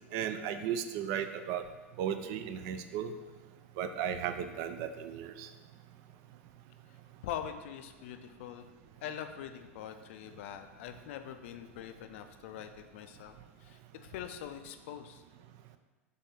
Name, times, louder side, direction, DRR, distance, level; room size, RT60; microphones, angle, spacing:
voice 1, 0.1-1.6 2.0-3.1 3.8-5.5, right 9 dB, 50° right, 9 dB, 0.3 m, -35 dB
voice 2, 7.2-8.7 9.0-15.2, left 9 dB, 60° left, 8 dB, 0.4 m, -43 dB
3.4 x 3.4 x 4.1 m, 1.3 s
hypercardioid pair, 90°, 8 cm